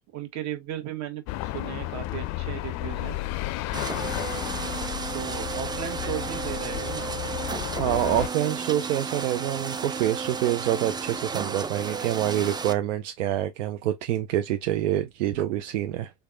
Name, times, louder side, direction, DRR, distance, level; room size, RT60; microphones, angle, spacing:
voice 1, 0.0-3.2 5.1-7.1, right 11 dB, 50° right, 1.3 m, -36 dB
sound 1, 1.3-8.3, left 17 dB, 50° left, 0.5 m, -32 dB
sound 2, 3.7-12.7, right 5 dB, 10° right, 0.4 m, -33 dB
voice 2, 7.8-16.1, right 12 dB, 75° right, 0.6 m, -26 dB
3.4 x 3.3 x 2.5 m
hypercardioid pair, 80°, 37 cm